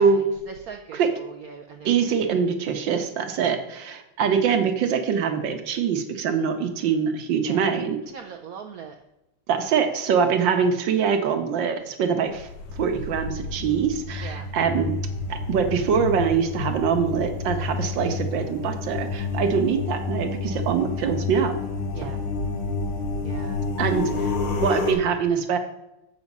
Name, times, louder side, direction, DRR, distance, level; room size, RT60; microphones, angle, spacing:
voice 1, 0.0-2.4 7.4-7.7 8.1-8.9 14.2-14.5 21.9-22.2 23.2-23.6, right 6 dB, 80° right, 4 dB, 0.8 m, -41 dB
voice 2, 1.8-8.0 9.5-12.5 12.8-15.0 15.3-21.5 22.0-22.1 23.8-24.3 24.6-25.6, right 6 dB, 65° right, 7 dB, 1.5 m, -23 dB
sound 1, 12.3-24.9, left 3 dB, 80° left, 2.2 m, -29 dB
7.4 x 7.1 x 5.3 m, 0.92 s
omnidirectional pair, 2.4 m